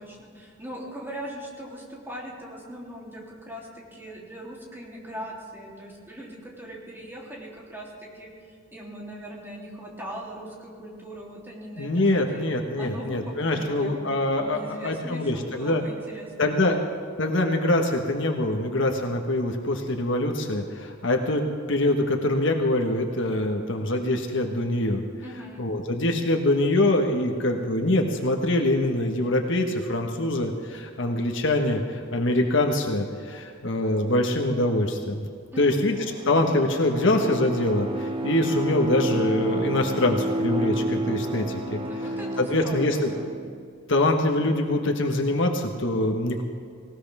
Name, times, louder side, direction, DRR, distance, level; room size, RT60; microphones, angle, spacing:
voice 1, 0.0-14.0 14.5-16.8 25.2-25.6 35.5-35.9 41.8-43.0, right 1 dB, 10° right, -4 dB, 3.2 m, -40 dB
voice 2, 11.8-15.8 16.4-16.8 17.2-25.0 25.6-35.3 35.6-35.9 36.2-41.8 42.4-43.1 43.9-46.4, left 1 dB, 65° left, 3 dB, 1.5 m, -24 dB
Bowed string instrument, 35.9-43.6, right 1 dB, 25° right, 1.1 m, -30 dB
19.0 x 18.5 x 3.6 m, 2.2 s
head